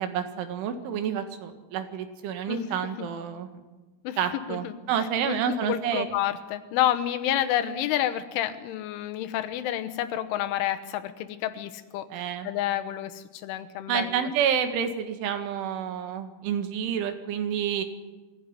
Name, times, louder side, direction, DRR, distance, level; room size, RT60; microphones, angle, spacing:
voice 1, 0.0-3.6 4.2-6.1 12.1-12.5 13.9-17.8, right 8 dB, 85° right, 7 dB, 4.3 m, -29 dB
voice 2, 5.3-14.3, left 12 dB, 90° left, 9 dB, 3.6 m, -29 dB
22.5 x 15.5 x 9.9 m, 1.2 s
omnidirectional pair, 5.4 m